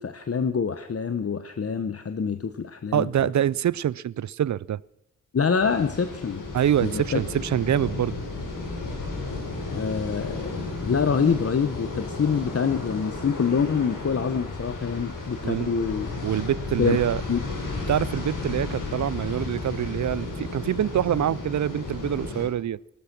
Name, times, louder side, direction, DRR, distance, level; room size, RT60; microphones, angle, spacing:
voice 1, 0.0-3.1 5.3-6.5 6.8-7.2 9.7-16.1 16.8-17.0 17.3-17.4, left 6 dB, 50° left, 1.0 m, -26 dB
voice 2, 2.9-4.8 6.5-8.2 15.4-15.7 16.2-17.2 17.9-22.8, right 10 dB, 65° right, 0.5 m, -25 dB
sound 1, 5.6-22.5, left 3 dB, 90° left, 4.9 m, -33 dB
18.5 x 12.5 x 6.1 m
cardioid pair, 75°, 31 cm